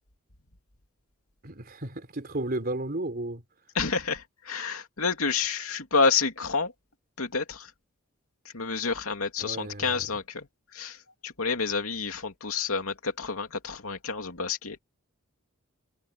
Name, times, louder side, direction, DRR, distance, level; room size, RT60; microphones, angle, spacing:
voice 1, 1.4-3.4 9.4-10.2, right 2 dB, 45° right, 3.9 m, -33 dB
voice 2, 3.7-6.7 7.2-7.7 8.5-10.5 10.7-11.0 11.2-14.8, left 4 dB, 80° left, 2.8 m, -29 dB
head